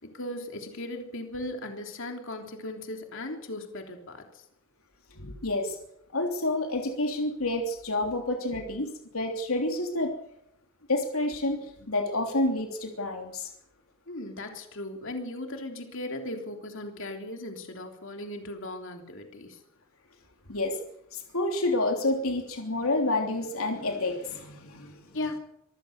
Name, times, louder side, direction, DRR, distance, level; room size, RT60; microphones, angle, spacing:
voice 1, 0.0-4.4 14.1-19.6 25.1-25.4, left 1 dB, 65° left, 4 dB, 3.3 m, -37 dB
voice 2, 5.2-5.8 6.1-10.1 10.9-13.5 20.5-20.8 21.1-25.0, left 2 dB, 85° left, 3 dB, 3.1 m, -29 dB
25.5 x 15.5 x 6.7 m, 0.78 s
head